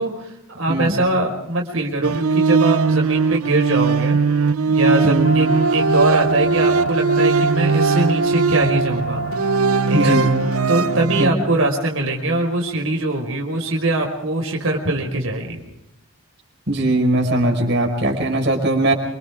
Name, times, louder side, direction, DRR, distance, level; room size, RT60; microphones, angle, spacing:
voice 1, 0.0-4.2 4.7-9.3 9.9-10.2 10.7-15.6, right 2 dB, 70° right, 1 dB, 5.1 m, -22 dB
voice 2, 0.7-1.0 5.0-5.4 9.9-10.3 11.2-11.4 16.7-18.9, right 1 dB, 50° right, 1 dB, 5.2 m, -19 dB
sound 1, 2.0-11.3, right 4 dB, 90° right, 0.7 m, -19 dB
sound 2, 5.2-11.0, right 2 dB, 80° left, 4.5 m, -25 dB
28.0 x 26.5 x 3.7 m, 0.84 s
head